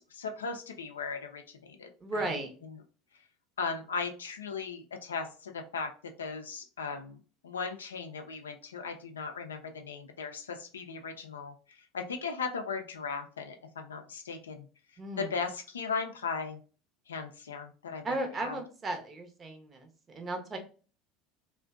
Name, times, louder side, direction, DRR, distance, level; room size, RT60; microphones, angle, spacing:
voice 1, 0.1-1.9 2.1-2.3 3.6-5.9 6.2-7.2 7.4-11.5 11.9-14.7 15.2-16.6 17.1-18.6, left 5 dB, 90° left, 5 dB, 0.4 m, -37 dB
voice 2, 2.0-2.5 15.0-15.3 18.0-20.6, right 2 dB, 30° right, 4 dB, 0.7 m, -35 dB
2.5 x 2.1 x 2.3 m, 0.37 s
hypercardioid pair, 80°, 0 cm